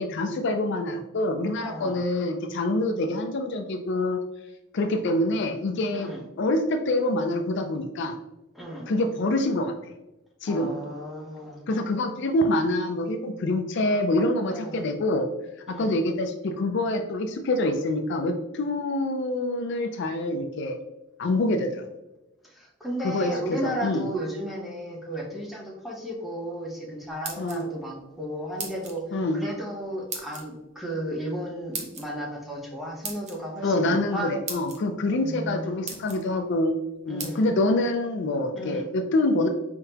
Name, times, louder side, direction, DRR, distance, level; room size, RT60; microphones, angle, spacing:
voice 1, 0.0-4.2 4.7-6.1 6.4-8.2 8.9-9.7 10.4-10.8 11.7-15.3 15.7-20.8 21.2-21.9 23.0-23.3 23.6-24.0 27.4-27.6 29.1-29.4 33.6-36.8 37.1-39.5, left 2 dB, 60° left, 6 dB, 0.4 m, -26 dB
voice 2, 1.6-2.0 5.9-6.2 8.5-8.9 10.5-11.6 14.5-14.8 15.7-16.0 22.4-29.1 29.3-34.3 35.2-36.4 37.1-37.5 38.5-38.9, equal, ahead, -3 dB, 0.9 m, -34 dB
sound 1, 27.0-27.9 28.6-29.0 30.1-30.4 31.7-32.1 33.0-33.4 34.1-34.2 34.5-34.8 35.4-35.5 35.8-36.2 37.2-37.3, right 4 dB, 35° right, 0.8 m, -36 dB
4.6 x 3.6 x 2.8 m, 0.97 s
head